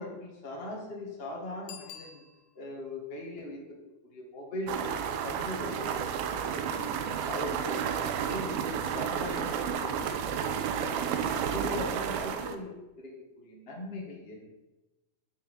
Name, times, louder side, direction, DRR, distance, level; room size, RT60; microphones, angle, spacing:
voice 1, 0.0-2.2 2.5-3.8 4.1-6.1 6.4-6.9 7.2-8.7 8.9-10.3 10.8-11.1 11.5-12.7 13.0-14.5, left 1 dB, 30° left, -2 dB, 1.0 m, -40 dB
Bicycle bell, 1.6-2.8 8.3-8.4, left 8 dB, 75° left, 2.7 m, -48 dB
sound 1, 4.7-12.6, right 8 dB, 80° right, 2.6 m, -31 dB
10.0 x 6.1 x 6.5 m, 1.1 s
omnidirectional pair, 4.5 m